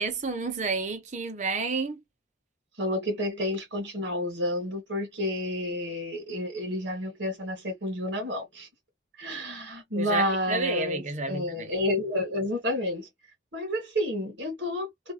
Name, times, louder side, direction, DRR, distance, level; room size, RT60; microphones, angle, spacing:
voice 1, 0.0-2.0 10.0-11.7, right 3 dB, 40° right, 0.8 m, -30 dB
voice 2, 2.8-8.7 9.2-13.1 13.5-15.1, left 1 dB, 65° right, 1.9 m, -30 dB
3.3 x 2.4 x 2.9 m
head